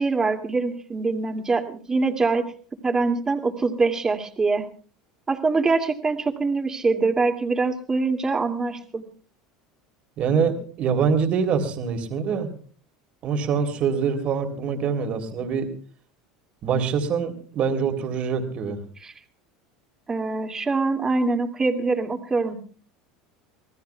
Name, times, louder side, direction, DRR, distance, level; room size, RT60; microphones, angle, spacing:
voice 1, 0.0-2.5 2.8-4.7 5.3-9.0 19.0-19.1 20.1-22.5, right 3 dB, 20° right, 4 dB, 2.6 m, -24 dB
voice 2, 10.2-12.5 13.2-15.7 16.6-18.8, right 6 dB, 50° right, 5 dB, 3.4 m, -24 dB
26.5 x 19.5 x 2.4 m, 0.43 s
hypercardioid pair, 85°, 3 cm